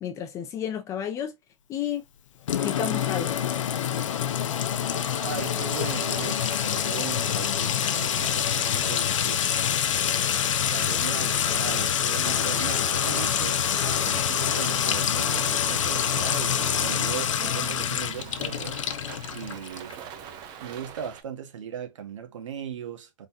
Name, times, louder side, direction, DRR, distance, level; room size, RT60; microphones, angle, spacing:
voice 1, 0.0-1.4 1.7-2.0 2.6-3.4, left 9 dB, 20° left, 0.7 m, -31 dB
Sink (filling or washing) / Trickle dribble / Fill (with liquid), 2.5-19.9, left 9 dB, 90° left, 0.8 m, -26 dB
sound 1, 4.8-21.2, right 9 dB, 25° right, 0.8 m, -43 dB
voice 2, 5.2-9.5 10.7-20.0 20.6-23.3, right 8 dB, 80° right, 1.5 m, -38 dB
sound 2, 11.1-19.7, right 5 dB, 50° right, 1.7 m, -43 dB
4.0 x 3.9 x 2.8 m
supercardioid pair, 160°, 16 cm